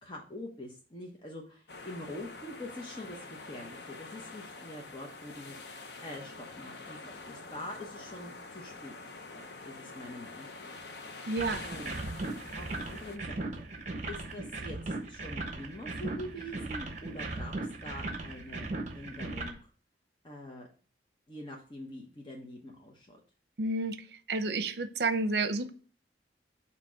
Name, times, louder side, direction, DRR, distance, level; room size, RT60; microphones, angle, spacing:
voice 1, 0.0-9.0 9.3-10.8 11.6-11.9 12.6-13.6 14.1-17.5 17.8-19.7 20.2-20.7 21.3-23.2, left 1 dB, 25° left, 0 dB, 1.0 m, -45 dB
sound 1, 1.7-13.2, left 3 dB, 70° left, 0.8 m, -46 dB
voice 2, 11.3-11.6 23.6-25.7, right 3 dB, 65° right, 10 dB, 0.7 m, -30 dB
sound 2, 11.4-19.5, right 2 dB, 40° right, 1.1 m, -38 dB
8.2 x 3.0 x 6.2 m, 0.41 s
head